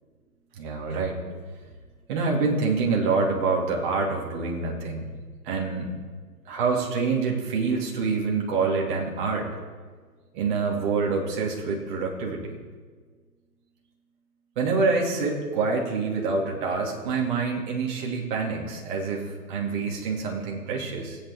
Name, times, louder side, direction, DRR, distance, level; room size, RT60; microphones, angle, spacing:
voice 1, 0.6-1.2 2.1-5.1 5.4-5.9 6.5-9.5 10.3-12.5 14.6-21.2, right 4 dB, 30° right, -1 dB, 2.3 m, -26 dB
18.5 x 8.5 x 3.6 m, 1.5 s
hypercardioid pair, 140°, 46 cm